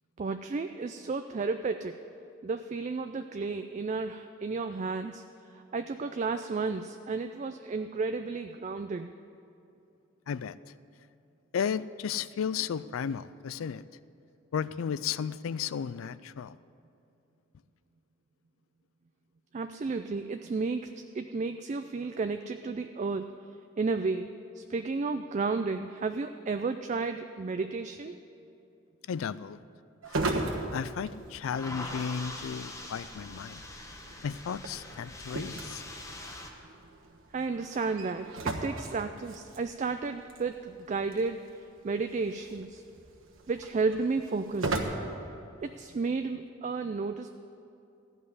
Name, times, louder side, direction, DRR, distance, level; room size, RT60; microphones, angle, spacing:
voice 1, 0.2-2.0 2.4-5.2 5.5-9.1 19.5-23.3 23.8-28.2 37.3-42.8 43.5-44.8 45.6-47.3, right 4 dB, 35° right, 8 dB, 0.3 m, -32 dB
voice 2, 10.3-10.6 11.5-13.8 14.5-16.6 29.1-29.6 30.1-30.2 30.7-33.6 34.2-35.8, left 7 dB, 85° left, 17 dB, 0.4 m, -34 dB
sound 1, 30.0-44.8, right 2 dB, 80° right, 1.3 m, -39 dB
sound 2, 30.4-36.5, left 1 dB, 15° left, 1.0 m, -43 dB
14.5 x 5.4 x 9.6 m, 2.7 s
head